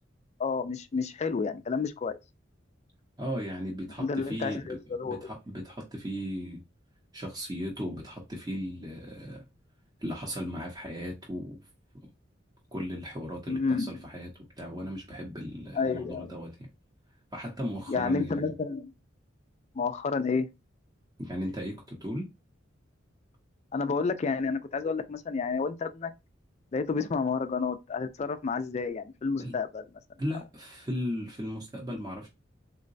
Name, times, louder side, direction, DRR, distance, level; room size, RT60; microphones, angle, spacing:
voice 1, 0.4-2.2 4.0-5.2 13.5-13.9 15.7-16.3 17.9-18.9 19.8-20.5 23.7-26.1 26.7-29.9, left 4 dB, 35° left, 0.3 m, -30 dB
voice 2, 3.2-6.6 7.1-9.4 10.0-11.6 12.7-16.7 17.3-18.5 21.2-22.3 29.4-29.5 30.2-32.3, equal, 20° right, 0.7 m, -36 dB
3.8 x 2.1 x 2.5 m
head